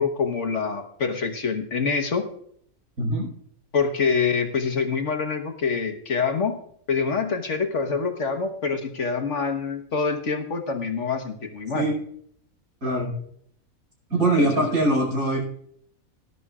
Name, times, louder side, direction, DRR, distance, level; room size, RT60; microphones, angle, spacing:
voice 1, 0.0-2.3 3.7-6.6 6.9-11.9 14.4-14.8, left 5 dB, 60° left, 6 dB, 1.5 m, -26 dB
voice 2, 3.0-3.3 11.7-11.9 12.8-13.1 14.1-15.4, right 1 dB, 80° right, -2 dB, 5.8 m, -22 dB
19.5 x 11.0 x 2.4 m, 0.65 s
omnidirectional pair, 1.5 m